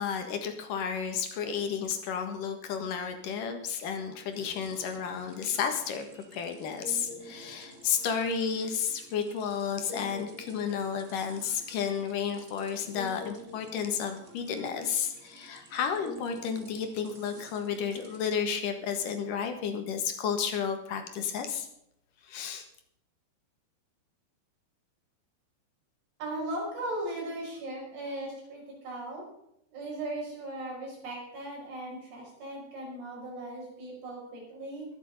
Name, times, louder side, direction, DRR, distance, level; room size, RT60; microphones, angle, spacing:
voice 1, 0.0-21.7 22.2-22.6, left 7 dB, 60° left, 6 dB, 2.9 m, -32 dB
sound 1, 4.3-18.3, equal, 50° right, 0.8 m, -49 dB
voice 2, 26.2-29.3 29.7-34.9, right 1 dB, 85° right, -3 dB, 7.9 m, -38 dB
22.0 x 7.5 x 5.4 m, 0.77 s
omnidirectional pair, 4.7 m